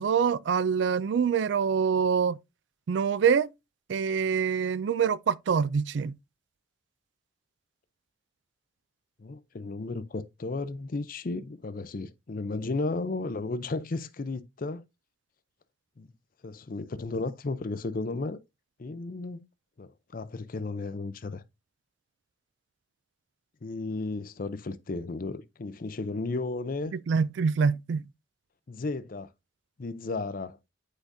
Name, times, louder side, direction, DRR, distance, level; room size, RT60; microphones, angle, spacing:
voice 1, 0.0-2.4 2.9-3.5 3.9-6.1 26.9-28.0, right 6 dB, 60° right, 0.3 m, -25 dB
voice 2, 9.2-14.8 16.0-16.1 16.4-18.4 18.8-19.4 19.8-21.4 23.6-26.9 28.7-29.3 29.8-30.6, left 3 dB, 45° left, 0.5 m, -34 dB
8.3 x 5.0 x 2.6 m
head